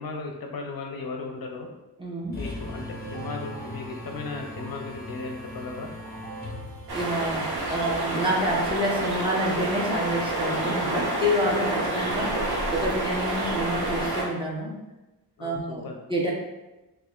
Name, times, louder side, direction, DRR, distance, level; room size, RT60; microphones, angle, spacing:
voice 1, 0.0-1.7 2.4-2.8 3.1-5.9 15.4-15.6 15.8-15.9, left 3 dB, 60° left, 2 dB, 0.6 m, -36 dB
voice 2, 2.0-2.4 6.9-12.4 12.7-14.7 15.4-15.8 16.1-16.3, equal, 10° right, -3 dB, 0.8 m, -28 dB
sound 1, 2.2-9.0, right 4 dB, 50° right, 0.7 m, -45 dB
sound 2, 2.3-7.7, left 2 dB, 25° left, 0.7 m, -39 dB
sound 3, 6.9-14.2, right 1 dB, 70° right, 1.0 m, -28 dB
6.5 x 2.4 x 2.3 m, 1.0 s
wide cardioid pair, 125°, 41 cm